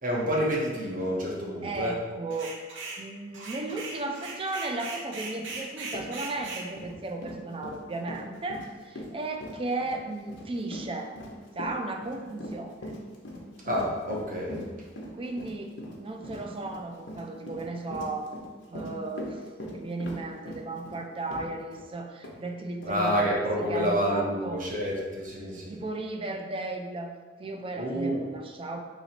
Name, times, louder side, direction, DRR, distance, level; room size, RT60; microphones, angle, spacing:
voice 1, 0.0-2.0 13.6-14.6 22.9-25.8 27.8-28.2, equal, 45° right, -3 dB, 0.9 m, -28 dB
voice 2, 1.6-2.6 3.0-11.1 11.6-12.7 15.1-18.4 18.7-19.4 19.7-23.4 23.7-24.6 25.5-28.8, right 2 dB, 30° right, 4 dB, 0.4 m, -35 dB
sound 1, 2.3-3.0 3.3-6.7, right 3 dB, 85° right, 0.7 m, -39 dB
Run, 5.5-5.6 5.9-21.9 22.2-22.4 22.8-22.9, equal, 90° left, 0.8 m, -41 dB
3.1 x 2.9 x 4.2 m, 1.4 s
head